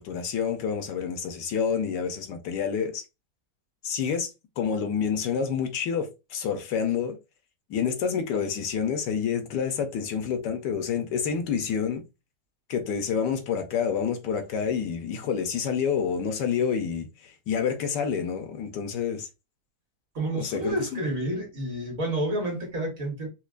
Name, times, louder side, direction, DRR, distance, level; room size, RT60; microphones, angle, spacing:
voice 1, 0.0-3.0 3.8-4.3 4.6-7.2 7.7-12.0 12.7-19.3 20.3-21.0, left 7 dB, 80° left, 1.4 m, -28 dB
voice 2, 20.1-23.3, right 1 dB, 50° right, 1.7 m, -29 dB
4.5 x 2.3 x 2.4 m
omnidirectional pair, 1.9 m